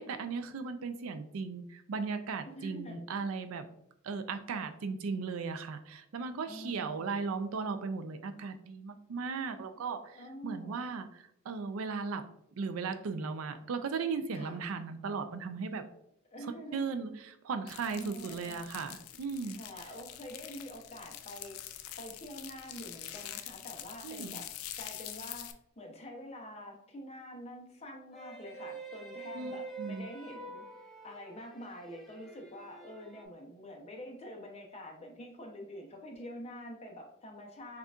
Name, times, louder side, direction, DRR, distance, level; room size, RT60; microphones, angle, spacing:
voice 1, 0.0-3.6 4.0-12.2 12.6-15.8 16.7-19.6 24.0-24.4 29.3-29.5 29.8-30.1, right 5 dB, 80° right, 8 dB, 0.4 m, -37 dB
voice 2, 2.5-3.0 6.5-7.2 9.7-10.8 14.3-14.6 16.3-17.0 18.0-18.6 19.4-21.6 22.0-24.5 24.7-25.5 25.8-37.8, equal, 30° left, 0 dB, 0.7 m, -46 dB
sound 1, 17.7-25.5, left 12 dB, 85° left, 0.4 m, -45 dB
sound 2, 28.1-33.2, right 4 dB, ahead, 0.6 m, -46 dB
6.3 x 2.4 x 2.4 m, 0.74 s
head